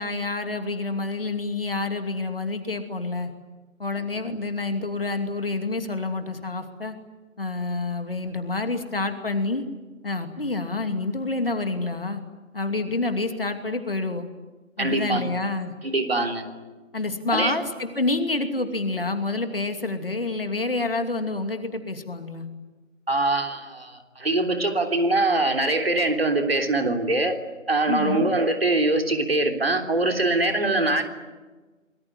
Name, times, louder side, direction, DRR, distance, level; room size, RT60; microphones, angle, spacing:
voice 1, 0.0-3.3 3.8-6.9 7.4-9.6 10.0-12.2 12.5-14.3 14.8-15.7 16.9-22.5 27.9-28.3, left 3 dB, 45° left, 7 dB, 2.7 m, -28 dB
voice 2, 14.8-15.2 15.8-16.5 17.3-17.6 23.1-27.4 27.7-31.0, right 2 dB, 50° right, 4 dB, 3.5 m, -23 dB
28.0 x 20.0 x 9.9 m, 1.2 s
figure-of-eight pair, 165°, 39 cm